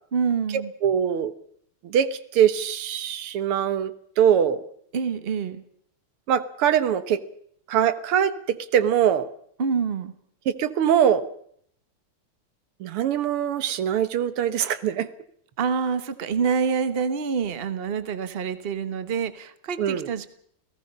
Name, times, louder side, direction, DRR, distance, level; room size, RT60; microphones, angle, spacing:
voice 1, 0.1-0.7 4.9-5.6 9.6-10.1 15.6-20.3, right 6 dB, 35° right, 12 dB, 1.2 m, -26 dB
voice 2, 0.8-1.3 1.8-4.6 6.3-7.2 7.7-9.3 10.5-11.3 12.8-15.1 19.8-20.1, right 9 dB, 80° right, 14 dB, 2.0 m, -22 dB
29.0 x 17.5 x 5.5 m, 0.65 s
omnidirectional pair, 2.4 m